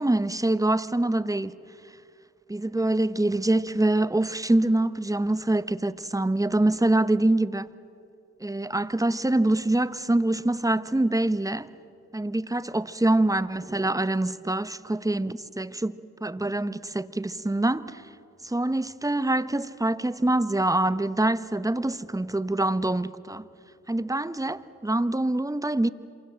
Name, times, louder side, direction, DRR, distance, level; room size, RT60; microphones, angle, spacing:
voice 1, 0.0-1.5 2.5-7.7 8.4-11.7 12.1-18.0 18.4-23.4 23.9-25.9, right 1 dB, 10° right, 1.2 m, -25 dB
27.0 x 24.5 x 7.7 m
supercardioid pair, 50°, 30 cm